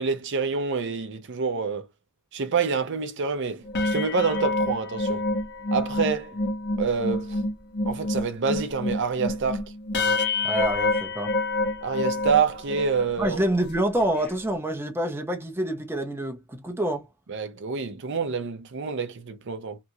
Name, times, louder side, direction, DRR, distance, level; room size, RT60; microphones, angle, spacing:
voice 1, 0.0-1.8 2.3-5.2 5.7-6.4 6.8-7.4 7.9-9.6 11.8-13.4 17.3-19.8, right 5 dB, 60° right, 0.5 m, -27 dB
sound 1, 3.6-13.1 13.6-13.7 14.0-14.3, left 2 dB, 50° left, 0.9 m, -27 dB
voice 2, 10.4-11.3 13.2-17.1, right 1 dB, 10° right, 0.6 m, -27 dB
2.8 x 2.4 x 2.7 m
head